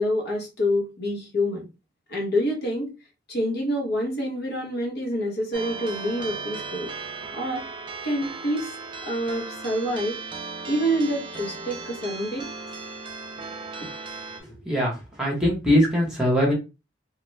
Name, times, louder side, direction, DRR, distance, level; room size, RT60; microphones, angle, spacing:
voice 1, 0.0-1.7 2.1-2.9 3.3-6.9 7.3-7.6 8.0-8.7 9.1-10.2 10.7-12.5, equal, 55° left, 0 dB, 1.0 m, -27 dB
sound 1, 5.5-14.4, right 4 dB, 25° right, 0.4 m, -36 dB
voice 2, 14.6-16.5, equal, 5° right, -3 dB, 0.9 m, -22 dB
2.3 x 2.2 x 3.1 m, 0.28 s
head